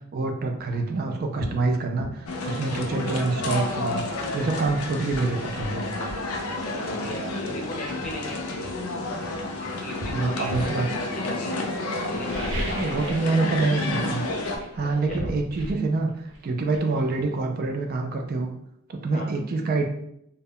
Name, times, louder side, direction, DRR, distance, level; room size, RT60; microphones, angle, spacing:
voice 1, 0.1-2.1 2.4-5.9 10.1-11.0 12.7-14.2 14.7-16.1 16.4-18.5 18.9-19.9, right 3 dB, 45° right, 4 dB, 0.3 m, -26 dB
sound 1, 0.6-0.8 1.4-1.6 2.0-2.2 4.1-4.2 4.6-6.3 7.3-7.5 8.0-9.4 10.0-10.8 12.1-13.4 13.6-14.0 14.3-17.9 18.2-18.3, equal, 85° right, 0.6 m, -37 dB
sound 2, 2.3-14.6, left 2 dB, 85° left, 0.4 m, -30 dB
voice 2, 6.6-8.5 9.2-9.3 9.6-11.7 12.0-13.5 14.8-15.3 19.1-19.3, left 1 dB, 35° left, -1 dB, 0.6 m, -37 dB
2.1 x 2.0 x 3.6 m, 0.75 s
head